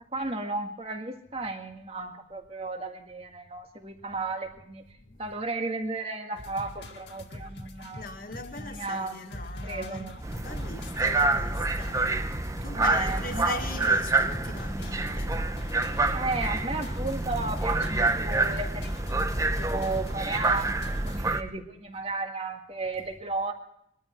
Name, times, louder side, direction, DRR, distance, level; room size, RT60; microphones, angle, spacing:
voice 1, 0.1-4.8 5.2-8.1 8.6-9.2 9.6-10.2 12.7-13.6 16.1-23.5, right 3 dB, 35° right, 1.9 m, -34 dB
voice 2, 5.0-5.3 7.9-16.1, left 3 dB, 50° left, 2.0 m, -40 dB
sound 1, 6.4-21.2, left 1 dB, 75° left, 2.1 m, -43 dB
sound 2, 10.2-21.4, right 2 dB, 20° right, 0.8 m, -27 dB
22.0 x 12.5 x 4.6 m
head